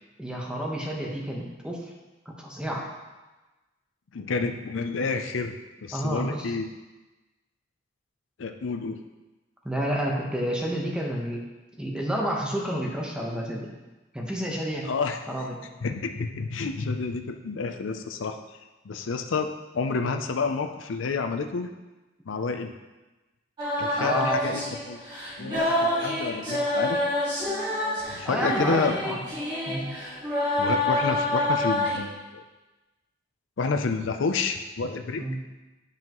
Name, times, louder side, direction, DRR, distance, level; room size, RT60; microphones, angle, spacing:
voice 1, 0.2-1.9 2.2-2.8 5.9-6.5 9.6-11.4 11.8-13.7 14.1-14.9 15.3-15.6 24.0-24.4 28.2-29.2 29.7-29.9 35.2-35.4, equal, 5° right, -2 dB, 1.1 m, -30 dB
voice 2, 4.1-5.5 5.8-6.7 8.4-9.0 14.8-15.2 15.8-18.4 18.9-21.7 22.3-22.7 23.8-25.0 25.4-27.1 28.1-29.0 30.6-32.4 33.6-35.2, left 4 dB, 80° left, 6 dB, 0.5 m, -29 dB
sound 1, 23.6-32.0, left 1 dB, 25° right, 2.0 m, -27 dB
9.8 x 5.6 x 3.0 m, 1.1 s
head